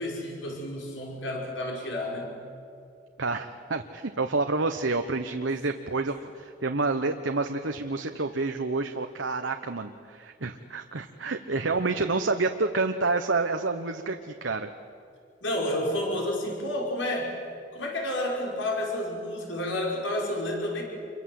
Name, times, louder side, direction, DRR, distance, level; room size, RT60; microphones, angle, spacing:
voice 1, 0.0-2.4 15.4-17.3 17.7-20.8, left 1 dB, 75° left, 0 dB, 5.2 m, -30 dB
voice 2, 3.2-14.7, right 3 dB, 75° right, 6 dB, 1.1 m, -28 dB
27.5 x 23.5 x 7.8 m, 2.4 s
head